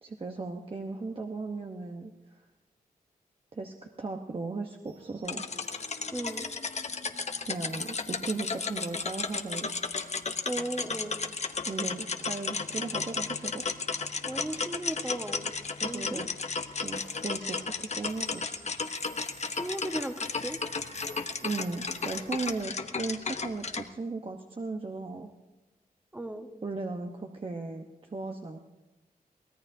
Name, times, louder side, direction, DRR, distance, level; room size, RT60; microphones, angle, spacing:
voice 1, 0.0-2.1 3.5-5.4 7.4-10.0 11.7-13.6 15.8-16.3 16.8-18.7 21.4-25.3 26.6-28.6, right 3 dB, 35° right, 3 dB, 1.0 m, -36 dB
sound 1, 4.9-15.3 15.5-15.9 16.2-22.6, right 4 dB, 60° right, 7.1 m, -54 dB
sound 2, 5.3-23.9, left 4 dB, 45° left, 0.9 m, -34 dB
voice 2, 6.1-6.5 10.4-11.2 14.3-15.5 15.8-16.2 19.5-20.6 26.1-26.5, right 1 dB, 10° right, 5 dB, 1.4 m, -36 dB
23.5 x 17.0 x 2.8 m, 1.1 s
cardioid pair, 75°, 16 cm